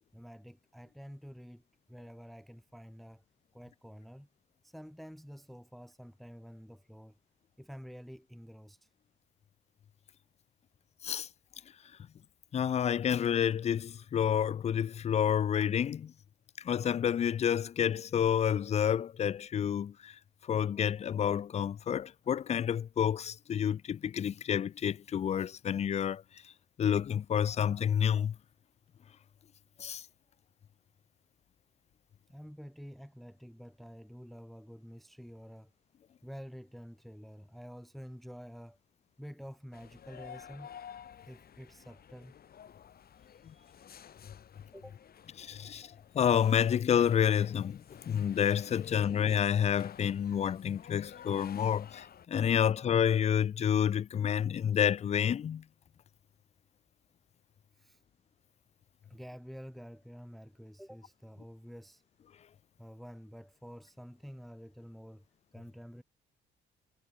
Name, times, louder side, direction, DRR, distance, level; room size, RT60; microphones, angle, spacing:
voice 1, 0.1-1.6 1.9-3.2 3.5-4.3 4.6-7.2 7.6-8.9 32.3-35.7 36.2-38.8 39.2-40.7 41.3-42.3 43.2-43.7 44.7-45.0 57.8-58.0 59.1-62.0 62.8-65.2 65.5-66.0, equal, ahead, 0.9 m, -49 dB
voice 2, 12.5-16.1 16.6-20.2 20.5-26.2 26.8-28.4 29.8-30.0 45.4-55.6, left 8 dB, 35° left, 0.3 m, -29 dB
sound 1, 39.7-52.3, left 8 dB, 50° left, 1.1 m, -52 dB
cardioid pair, 90°, 20 cm